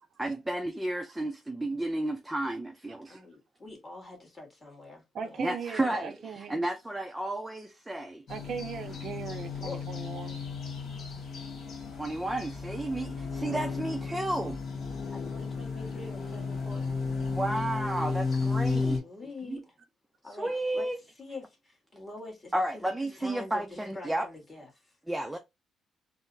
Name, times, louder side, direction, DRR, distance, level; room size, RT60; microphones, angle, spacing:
voice 1, 0.2-3.2 5.4-8.2 12.0-14.6 17.3-19.0 19.5-19.6 20.4-21.0 22.5-24.3 25.1-25.4, right 1 dB, 10° right, 0.5 m, -32 dB
voice 2, 3.1-5.4 9.6-9.8 13.4-13.7 15.1-16.9 18.6-19.8 20.2-20.9 21.2-25.0, left 2 dB, 20° left, 1.6 m, -45 dB
voice 3, 5.1-6.6 8.3-10.4 14.4-14.5, right 6 dB, 60° right, 0.5 m, -39 dB
sound 1, 8.3-19.0, left 4 dB, 55° left, 1.4 m, -34 dB
3.8 x 2.0 x 2.6 m
cardioid pair, 90°, 0 cm